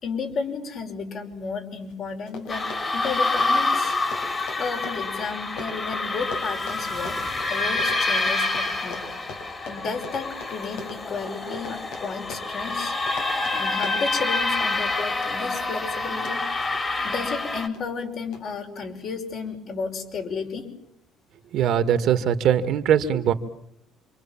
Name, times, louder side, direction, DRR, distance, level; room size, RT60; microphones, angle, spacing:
voice 1, 0.0-3.9 4.6-7.2 7.5-9.0 9.7-12.9 13.5-16.4 17.0-20.7, left 5 dB, 50° left, 3 dB, 5.5 m, -33 dB
Run, 1.9-2.0 2.2-17.2 17.7-18.0 18.3-18.4, left 3 dB, 85° left, 6.2 m, -41 dB
sound 1, 2.5-17.7, left 3 dB, 25° left, 3.3 m, -27 dB
voice 2, 21.5-23.3, right 9 dB, 60° right, 9 dB, 2.0 m, -21 dB
27.5 x 25.5 x 7.4 m, 0.76 s
cardioid pair, 125°, 0 cm